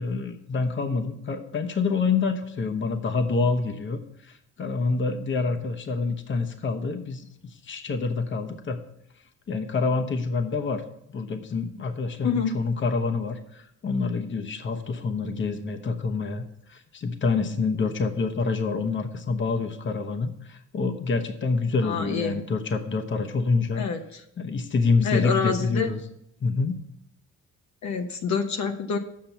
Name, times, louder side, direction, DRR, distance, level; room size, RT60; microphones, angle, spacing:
voice 1, 0.0-8.8 9.5-10.8 11.1-23.8 24.4-26.0 26.4-26.8, left 4 dB, 40° left, 7 dB, 0.9 m, -27 dB
voice 2, 21.8-22.4 23.8-24.2 25.0-25.9 27.8-29.0, left 6 dB, 65° left, 5 dB, 0.9 m, -27 dB
7.6 x 5.8 x 6.8 m, 0.76 s
cardioid pair, 90°, 30 cm